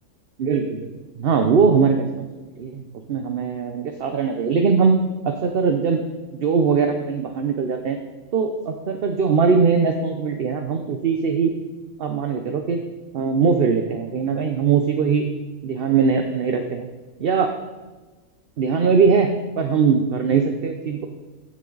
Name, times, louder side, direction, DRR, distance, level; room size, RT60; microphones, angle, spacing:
voice 1, 0.4-2.2 2.6-2.8 3.1-4.9 5.2-6.0 6.3-8.0 8.3-11.5 12.0-12.8 13.1-15.2 15.6-16.8 17.2-17.5 18.6-21.1, right 5 dB, 55° right, 5 dB, 0.8 m, -21 dB
14.5 x 6.5 x 3.9 m, 1.2 s
omnidirectional pair, 1.3 m